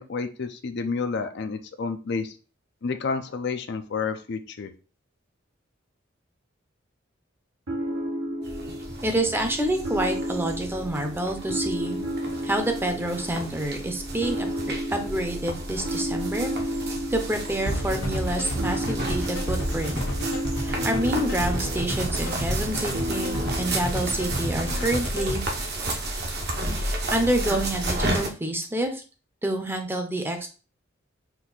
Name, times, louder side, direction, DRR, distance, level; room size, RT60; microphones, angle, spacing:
voice 1, 0.0-2.4 2.8-4.7, left 4 dB, 60° left, 8 dB, 0.4 m, -30 dB
sound 1, 7.7-25.1, equal, 80° right, 1.1 m, -33 dB
sound 2, 8.4-28.3, right 1 dB, 55° right, 0.9 m, -32 dB
voice 2, 9.0-12.0 12.4-14.5 14.9-16.5 17.1-20.0 20.6-25.4 26.7-29.0 29.4-30.5, right 1 dB, 10° right, 5 dB, 0.6 m, -28 dB
sound 3, 17.7-25.4, equal, 90° left, 1.2 m, -31 dB
4.5 x 2.6 x 3.9 m, 0.36 s
head